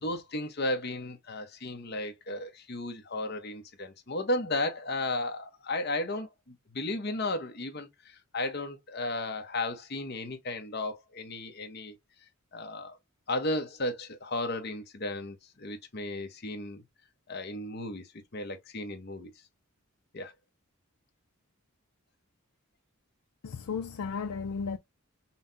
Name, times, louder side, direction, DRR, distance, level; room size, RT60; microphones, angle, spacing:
voice 1, 0.0-12.0 12.5-13.0 13.3-16.8 17.3-19.3 20.1-20.3, left 2 dB, 45° left, 0.9 m, -34 dB
voice 2, 23.4-24.8, left 5 dB, 90° left, 0.5 m, -34 dB
5.6 x 2.2 x 2.7 m
head